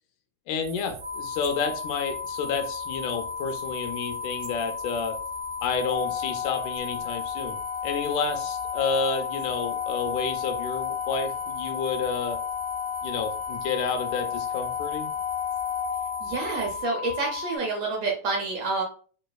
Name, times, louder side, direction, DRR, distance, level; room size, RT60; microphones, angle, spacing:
voice 1, 0.5-5.2 5.6-7.6 7.8-12.4 13.0-15.1, left 5 dB, 80° left, 6 dB, 2.0 m, -30 dB
sound 1, 0.6-16.8, right 7 dB, 90° right, 2.2 m, -45 dB
sound 2, 1.0-17.6, left 6 dB, 30° right, 0.8 m, -35 dB
Organ, 5.8-16.6, left 12 dB, 50° right, 1.4 m, -34 dB
voice 2, 16.2-18.8, right 3 dB, 75° right, -1 dB, 1.6 m, -28 dB
4.8 x 3.0 x 2.2 m, 0.43 s
omnidirectional pair, 3.7 m